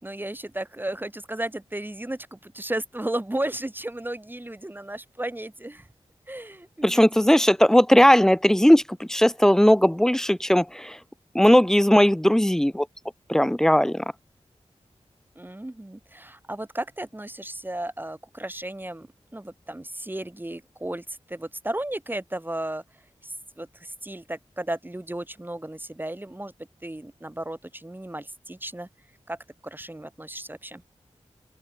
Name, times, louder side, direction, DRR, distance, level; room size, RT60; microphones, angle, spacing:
voice 1, 0.0-5.9 6.3-7.3 15.4-22.8 23.2-26.5 26.8-28.9 29.3-29.4 29.6-30.8, right 1 dB, 15° right, 3.4 m, -34 dB
voice 2, 6.8-11.0 11.3-12.9 13.3-14.0, equal, 5° left, 0.4 m, -18 dB
open air
wide cardioid pair, 70°, 11 cm